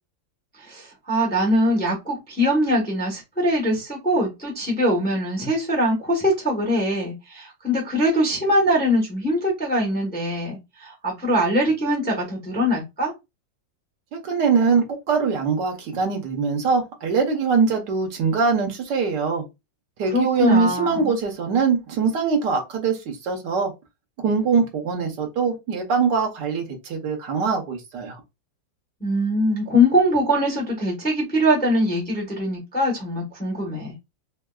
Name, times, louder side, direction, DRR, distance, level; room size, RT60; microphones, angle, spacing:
voice 1, 0.6-13.1 20.1-21.2 29.0-33.9, equal, 10° left, 0.5 m, -22 dB
voice 2, 14.1-19.4 20.0-23.7 24.2-28.2, right 5 dB, 70° right, 1.3 m, -22 dB
3.5 x 2.3 x 2.2 m
omnidirectional pair, 2.0 m